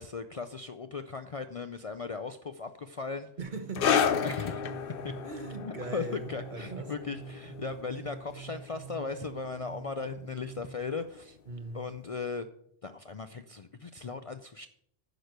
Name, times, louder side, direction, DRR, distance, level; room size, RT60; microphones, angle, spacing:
voice 1, 0.0-3.3 4.2-4.6 5.0-5.2 5.6-11.4 11.7-12.5 12.8-14.7, left 4 dB, 45° left, 0.5 m, -37 dB
voice 2, 3.4-4.2 5.2-6.9 11.5-11.8, right 3 dB, 50° right, 1.2 m, -40 dB
sound 1, 3.4-10.9, right 8 dB, 75° right, 1.6 m, -46 dB
sound 2, 3.7-10.7 11.0-11.2 12.0-12.1, left 7 dB, 65° left, 0.8 m, -33 dB
10.0 x 6.2 x 6.5 m
omnidirectional pair, 1.0 m